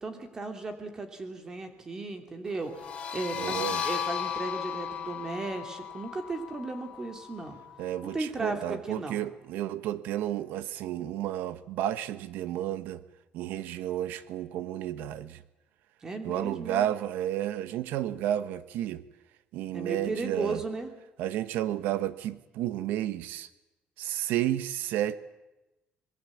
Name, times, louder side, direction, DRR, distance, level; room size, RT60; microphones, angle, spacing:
voice 1, 0.0-2.9 3.1-7.6 8.0-9.3 16.0-16.9 19.7-20.9, right 3 dB, 20° right, 6 dB, 2.9 m, -35 dB
sound 1, 2.7-8.1, left 8 dB, 35° left, 4.8 m, -36 dB
voice 2, 3.4-3.8 7.8-13.0 13.3-15.4 16.2-19.0 19.5-20.6 21.2-23.5 24.0-25.2, right 12 dB, 80° right, 14 dB, 1.4 m, -32 dB
25.5 x 21.5 x 8.6 m, 0.99 s
cardioid pair, 180°, 3 cm